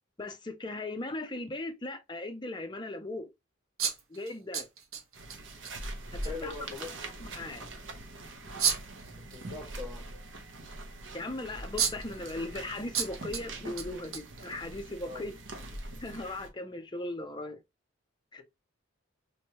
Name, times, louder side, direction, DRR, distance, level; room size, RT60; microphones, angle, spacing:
voice 1, 0.2-3.3 4.1-4.7 6.1-6.5 7.2-7.6 11.1-15.4 16.0-17.6 18.3-18.4, left 2 dB, 20° left, 0.5 m, -38 dB
sound 1, 3.8-5.4 5.6-5.7 6.2-6.3 8.6-9.0 11.3-11.4 11.8-12.2 12.9-13.4 13.8-14.7, right 7 dB, 85° right, 1.0 m, -31 dB
sound 2, 5.1-16.5, right 2 dB, 65° right, 0.9 m, -43 dB
voice 2, 6.2-7.0 9.3-10.1 15.0-15.3, left 3 dB, 30° right, 1.7 m, -41 dB
3.4 x 3.2 x 2.8 m
head